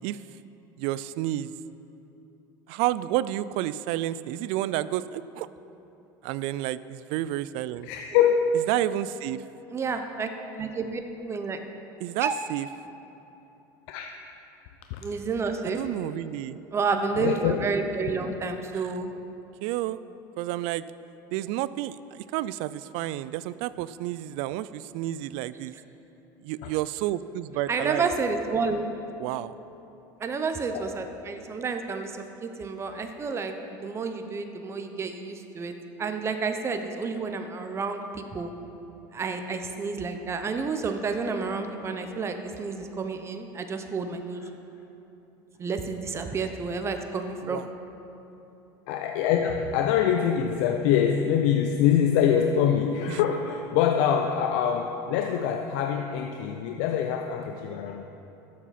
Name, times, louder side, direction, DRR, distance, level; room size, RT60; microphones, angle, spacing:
voice 1, 0.8-1.5 2.7-5.5 6.2-7.9 8.7-9.4 12.0-12.7 15.6-16.6 18.7-18.9 19.6-20.0 20.4-20.9 21.3-25.7 26.4-28.1 29.2-29.5 47.4-47.7 53.1-53.2, right 14 dB, 65° right, 17 dB, 0.4 m, -30 dB
voice 2, 7.8-8.5 13.9-14.1 14.9-15.0 17.1-17.6 26.6-26.7 30.7-30.9 48.9-58.0, left 8 dB, 70° left, 4 dB, 0.6 m, -24 dB
voice 3, 9.7-10.3 10.6-11.6 12.2-12.3 15.0-15.8 16.7-19.1 27.7-28.8 30.2-32.1 32.4-38.5 39.1-44.4 45.6-47.6, right 4 dB, 25° right, 6 dB, 0.8 m, -30 dB
13.5 x 7.4 x 4.2 m, 3.0 s
supercardioid pair, 105°, 10 cm